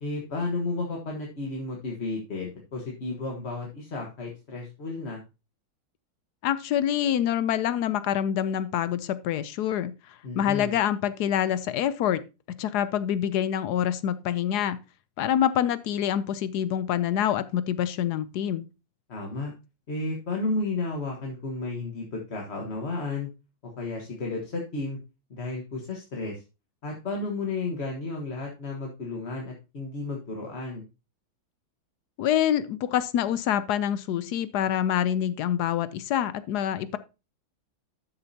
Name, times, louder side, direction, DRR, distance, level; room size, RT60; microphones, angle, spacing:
voice 1, 0.0-5.2 10.2-10.8 19.1-19.5 19.9-23.3 23.6-25.0 25.3-26.4 26.8-30.8, left 3 dB, 35° left, 0 dB, 1.5 m, -32 dB
voice 2, 6.4-9.9 10.3-12.2 12.6-14.8 15.2-18.7 32.2-37.0, left 10 dB, 70° left, 14 dB, 1.0 m, -26 dB
12.5 x 6.7 x 2.8 m, 0.28 s
omnidirectional pair, 2.1 m